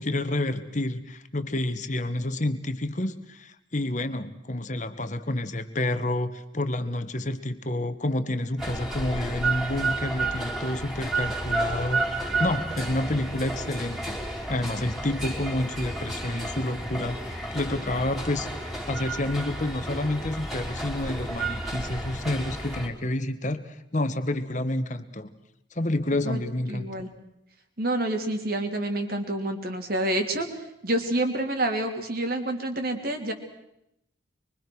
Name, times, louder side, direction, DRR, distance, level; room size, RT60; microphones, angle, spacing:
voice 1, 0.0-14.2 14.5-18.5 18.8-25.3 25.7-26.9, left 1 dB, 40° left, 10 dB, 1.4 m, -29 dB
sound 1, 8.6-22.9, right 2 dB, ahead, 3.5 m, -31 dB
voice 2, 26.7-27.1 27.8-33.3, right 1 dB, 50° right, 5 dB, 3.2 m, -28 dB
24.5 x 24.0 x 6.2 m, 0.82 s
head